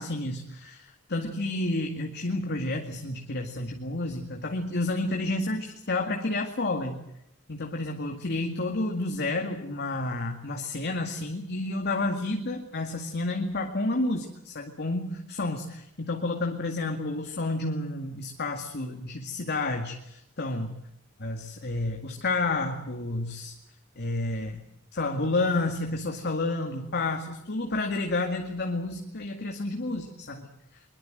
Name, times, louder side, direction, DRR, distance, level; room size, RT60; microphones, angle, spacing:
voice 1, 0.0-7.0 7.5-20.7 21.2-23.5 24.0-24.6 24.9-30.8, left 2 dB, 50° left, 3 dB, 2.1 m, -30 dB
22.5 x 22.5 x 7.9 m, 0.82 s
head